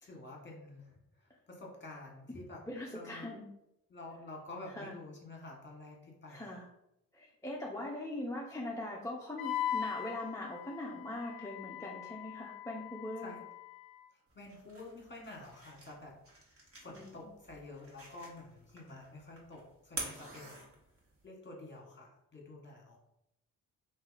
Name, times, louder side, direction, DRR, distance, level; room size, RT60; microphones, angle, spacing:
voice 1, 0.0-2.6 2.9-3.3 3.9-6.5 13.2-13.4 14.1-16.2 16.8-20.6 21.2-23.0, left 2 dB, 25° left, -1 dB, 1.5 m, -49 dB
voice 2, 2.7-3.5 4.7-4.9 6.3-6.7 7.1-13.4 16.9-17.3, left 1 dB, 5° left, -3 dB, 0.6 m, -41 dB
Wind instrument woodwind instrument, 9.4-14.0, left 10 dB, 55° left, 0.6 m, -40 dB
sound 1, 14.3-21.2, right 2 dB, 30° right, 1.5 m, -48 dB
2.7 x 2.7 x 4.0 m, 0.83 s
hypercardioid pair, 50°, 43 cm